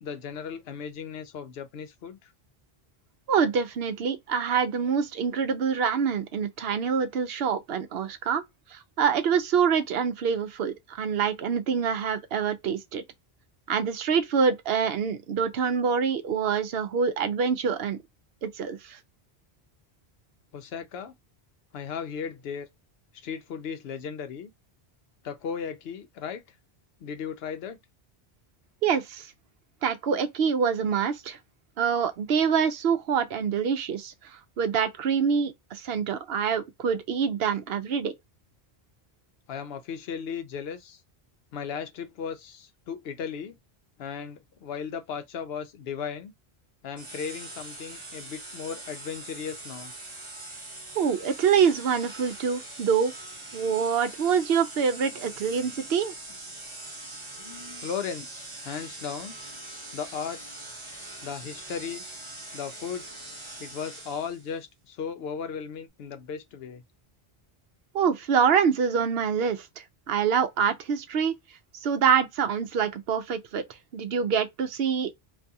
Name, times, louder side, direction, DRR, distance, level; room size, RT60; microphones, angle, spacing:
voice 1, 0.0-2.3 20.5-21.1 21.7-22.7 23.1-24.5 25.2-26.4 27.0-27.8 39.5-41.0 41.5-43.6 44.0-46.3 46.8-49.9 55.4-55.8 57.4-59.4 59.9-60.4 61.2-62.0 62.5-63.1 63.6-66.8, left 7 dB, 75° left, 0.8 m, -36 dB
voice 2, 3.3-8.4 8.7-13.0 13.7-18.0 18.4-19.0 28.8-29.3 29.8-31.4 31.8-38.1 51.0-53.1 53.5-56.1 67.9-71.3 71.7-73.6 73.9-75.1, right 7 dB, 70° right, 0.8 m, -26 dB
sound 1, 47.0-64.5, right 2 dB, 30° right, 0.8 m, -42 dB
2.5 x 2.3 x 2.7 m
omnidirectional pair, 1.1 m